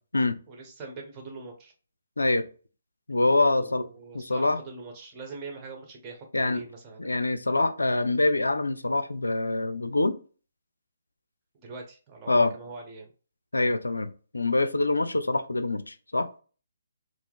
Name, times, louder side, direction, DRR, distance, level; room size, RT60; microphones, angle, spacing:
voice 1, 0.5-1.7 3.6-7.1 11.6-13.1, right 3 dB, 25° right, 1.1 m, -42 dB
voice 2, 3.1-3.9 4.1-4.6 6.3-6.6 7.0-10.2 12.3-12.5 13.5-16.3, left 2 dB, 75° left, 0.4 m, -25 dB
4.7 x 2.0 x 3.5 m
figure-of-eight pair, 140°, 0 cm